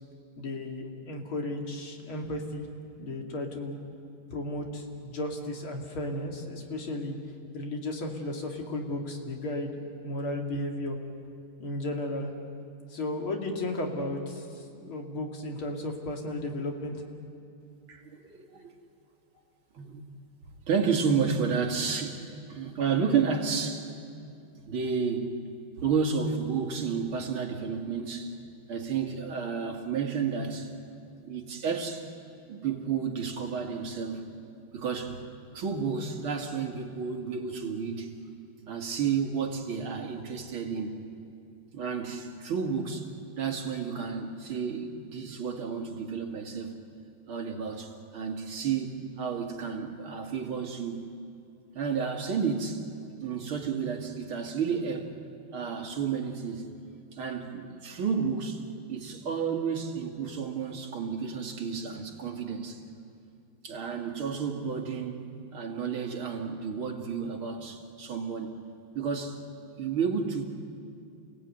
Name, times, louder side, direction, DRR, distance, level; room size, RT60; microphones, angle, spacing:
voice 1, 0.4-2.7 3.0-3.8 4.3-7.2 7.5-11.0 11.6-12.3 12.9-17.0, left 1 dB, 75° left, 1 dB, 3.4 m, -34 dB
voice 2, 17.9-18.7 19.7-20.0 20.7-22.2 22.5-23.9 24.7-25.4 25.8-28.3 28.7-30.7 31.2-32.1 32.5-34.3 34.7-35.2 35.5-38.1 38.7-41.0 41.7-43.1 43.4-46.8 47.3-51.0 51.7-52.8 53.2-55.1 55.5-56.7 57.1-58.6 58.9-62.8 63.6-65.2 65.5-68.6 68.9-69.4 69.8-70.4, right 6 dB, 80° right, 2 dB, 3.0 m, -31 dB
28.5 x 18.0 x 9.1 m, 2.6 s
omnidirectional pair, 2.3 m